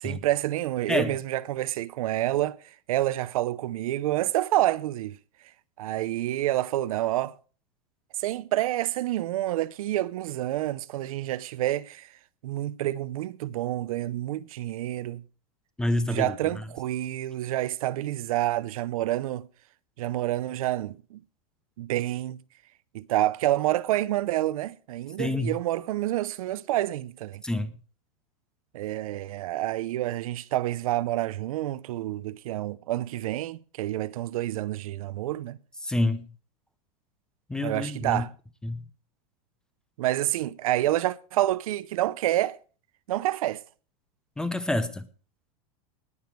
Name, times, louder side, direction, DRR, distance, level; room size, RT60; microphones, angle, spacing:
voice 1, 0.0-2.6 2.9-5.2 5.8-7.3 8.2-12.1 12.4-15.2 16.0-19.5 20.0-21.2 21.8-22.4 22.9-27.4 28.7-35.6 37.6-38.3 40.0-42.6 43.1-43.6, right 14 dB, 65° right, 0.7 m, -28 dB
voice 2, 15.8-16.3 25.2-25.6 27.4-27.7 35.8-36.3 37.5-38.2 38.6-38.8 44.4-45.1, left 1 dB, 5° left, 0.6 m, -27 dB
19.0 x 7.1 x 4.6 m
supercardioid pair, 165°, 19 cm